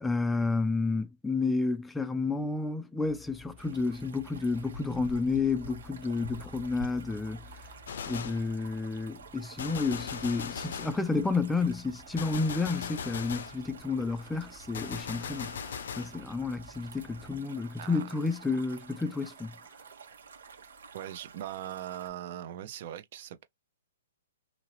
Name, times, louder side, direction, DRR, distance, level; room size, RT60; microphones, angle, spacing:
voice 1, 0.0-7.4 8.1-15.5 15.9-19.6, left 3 dB, 5° left, 0.4 m, -31 dB
sound 1, 3.0-17.4, left 3 dB, 25° right, 1.2 m, -54 dB
sound 2, 3.6-22.1, right 4 dB, 80° right, 1.3 m, -50 dB
Gunshot gunfire, 7.9-8.5 9.6-11.1 12.2-13.6 14.7-16.2, left 7 dB, 65° left, 0.5 m, -38 dB
voice 2, 20.9-23.4, right 11 dB, 45° right, 0.6 m, -40 dB
2.7 x 2.7 x 3.0 m
hypercardioid pair, 160°, 0 cm